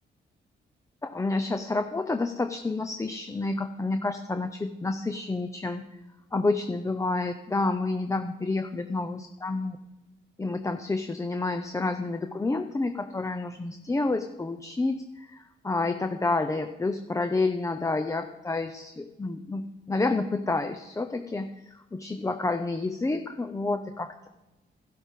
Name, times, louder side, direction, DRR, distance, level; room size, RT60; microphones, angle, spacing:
voice 1, 1.0-5.8 6.3-9.8 10.4-24.3, left 3 dB, 15° left, 7 dB, 0.7 m, -29 dB
12.0 x 12.0 x 3.7 m, 1.0 s
cardioid pair, 95°, 20 cm